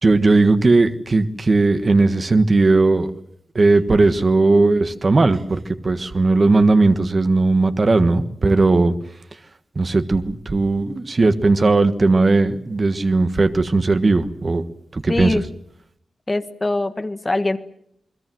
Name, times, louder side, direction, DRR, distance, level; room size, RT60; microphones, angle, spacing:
voice 1, 0.0-3.1 3.5-8.9 9.7-14.6 14.9-15.4, right 3 dB, 30° right, 9 dB, 1.5 m, -17 dB
voice 2, 15.1-15.4 16.3-17.6, left 2 dB, 20° left, 9 dB, 1.5 m, -22 dB
28.5 x 22.0 x 7.8 m, 0.69 s
wide cardioid pair, 175°, 0 cm